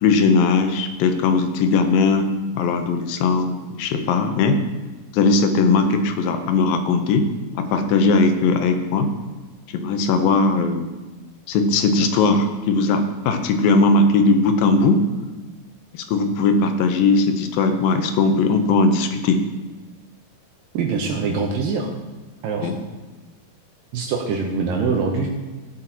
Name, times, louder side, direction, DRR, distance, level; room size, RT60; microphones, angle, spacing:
voice 1, 0.0-4.6 5.1-7.3 7.6-9.1 9.7-10.8 11.5-15.0 15.9-19.4 22.6-22.7, left 3 dB, 80° left, 6 dB, 2.5 m, -19 dB
voice 2, 20.7-21.9 22.4-22.7 23.9-25.3, right 4 dB, 75° right, 1 dB, 2.5 m, -23 dB
16.5 x 8.0 x 2.9 m, 1.2 s
omnidirectional pair, 4.3 m